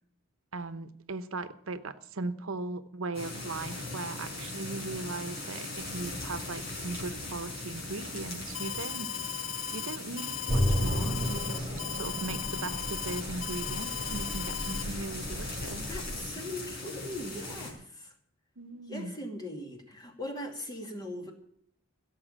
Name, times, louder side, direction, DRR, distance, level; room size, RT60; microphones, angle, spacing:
voice 1, 0.5-9.1 9.7-15.9 18.6-19.1, right 3 dB, 80° right, 12 dB, 0.9 m, -38 dB
sound 1, 3.1-17.7, left 2 dB, 50° left, 5.1 m, -39 dB
Alarm, 8.5-14.8, left 9 dB, 65° left, 0.8 m, -37 dB
sound 2, 10.5-16.2, equal, 5° right, 4.0 m, -33 dB
voice 2, 15.9-18.1 18.9-21.3, left 1 dB, 20° left, 3 dB, 2.4 m, -40 dB
16.0 x 7.2 x 8.6 m, 0.65 s
head